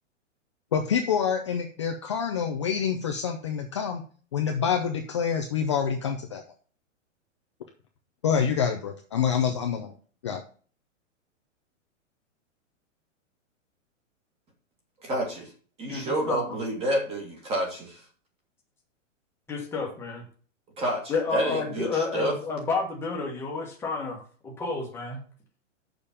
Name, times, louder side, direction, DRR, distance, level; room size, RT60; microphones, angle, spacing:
voice 1, 0.7-4.0 4.3-6.4 8.2-9.9 10.2-10.4, left 7 dB, 25° left, 3 dB, 0.5 m, -27 dB
voice 2, 15.0-15.5 15.8-18.0 20.8-22.3, right 1 dB, 15° right, 1 dB, 1.9 m, -29 dB
voice 3, 15.9-16.6 19.5-20.2 21.1-25.2, left 4 dB, 5° left, -1 dB, 1.3 m, -30 dB
6.8 x 5.2 x 7.1 m, 0.41 s
hypercardioid pair, 170°, 38 cm